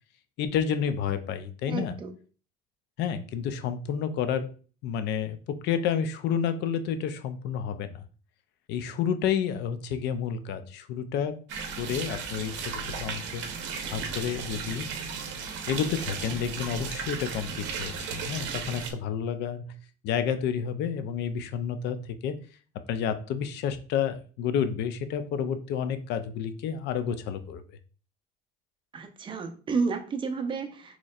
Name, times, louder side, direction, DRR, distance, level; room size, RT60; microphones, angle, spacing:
voice 1, 0.4-2.0 3.0-4.5 4.8-8.0 8.7-11.4 11.8-13.4 13.9-14.9 15.7-19.7 20.0-22.4 22.7-27.6, left 8 dB, 60° left, 0.5 m, -30 dB
voice 2, 1.7-2.1 28.9-31.0, right 4 dB, 25° right, 0.6 m, -31 dB
sound 1, 11.5-18.9, right 5 dB, 65° right, 0.7 m, -35 dB
4.0 x 3.0 x 2.4 m
cardioid pair, 120°, 20 cm